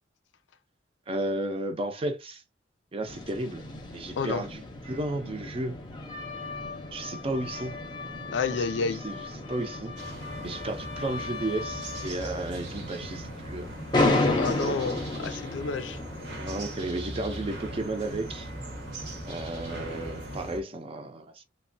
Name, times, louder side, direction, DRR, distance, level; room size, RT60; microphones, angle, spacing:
voice 1, 1.1-2.4 2.9-3.6 3.9-4.6 4.9-5.8 6.9-7.7 8.7-9.2 9.5-9.9 10.4-13.8 14.1-14.3 14.5-14.8 16.4-18.5 19.2-21.4, right 2 dB, 30° right, 0.5 m, -33 dB
sound 1, 3.1-20.4, left 2 dB, 25° left, 0.6 m, -34 dB
voice 2, 8.3-9.0 14.4-16.0, left 4 dB, 90° left, 0.4 m, -30 dB
sound 2, 10.0-20.6, right 1 dB, 70° right, 0.8 m, -40 dB
2.9 x 2.1 x 2.5 m
head